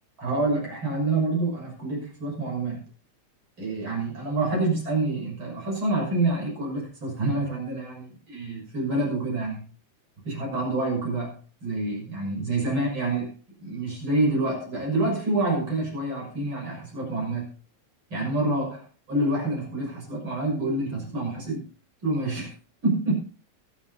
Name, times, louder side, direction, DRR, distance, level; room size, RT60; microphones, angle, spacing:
voice 1, 0.2-2.8 3.6-9.6 10.3-13.3 13.6-17.5 18.1-18.8 19.1-21.6 22.0-22.5 22.8-23.2, right 2 dB, 40° right, -2 dB, 7.1 m, -27 dB
23.5 x 9.9 x 2.9 m, 0.38 s
omnidirectional pair, 3.5 m